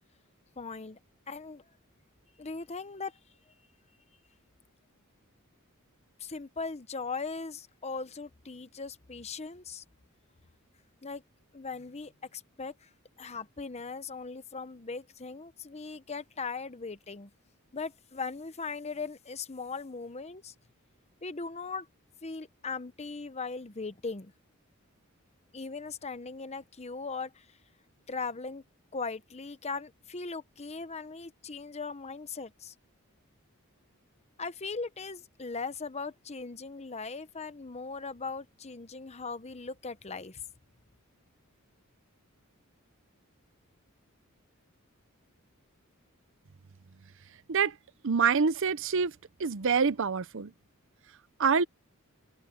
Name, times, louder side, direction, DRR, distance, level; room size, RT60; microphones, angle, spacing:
voice 1, 0.6-1.0 1.3-1.6 2.4-3.1 6.2-9.8 11.0-11.2 11.5-12.9 13.2-17.3 17.7-20.5 21.2-21.9 22.2-24.3 25.5-27.5 28.1-28.6 28.9-32.7 34.4-40.4, left 4 dB, 30° left, 0.9 m, -39 dB
voice 2, 48.0-49.1 49.4-50.5 51.4-51.6, right 5 dB, 60° right, 0.7 m, -26 dB
head